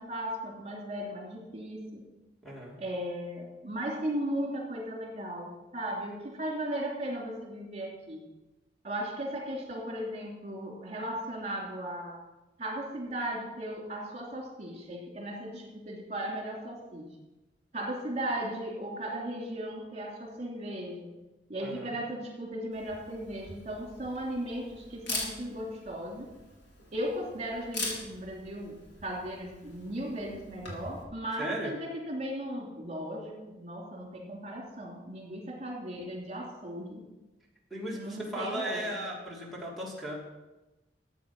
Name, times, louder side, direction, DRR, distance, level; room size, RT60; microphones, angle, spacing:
voice 1, 0.0-2.0 2.8-8.2 8.8-12.2 12.6-17.1 17.7-21.1 21.5-26.3 26.9-37.0 37.9-39.0, right 1 dB, 40° right, -1 dB, 3.0 m, -36 dB
voice 2, 2.4-2.8 21.6-22.0 31.4-31.7 37.7-40.2, right 1 dB, ahead, -4 dB, 2.8 m, -36 dB
Camera, 22.7-31.0, left 2 dB, 70° left, 4.2 m, -42 dB
14.0 x 8.7 x 6.0 m, 1.1 s
head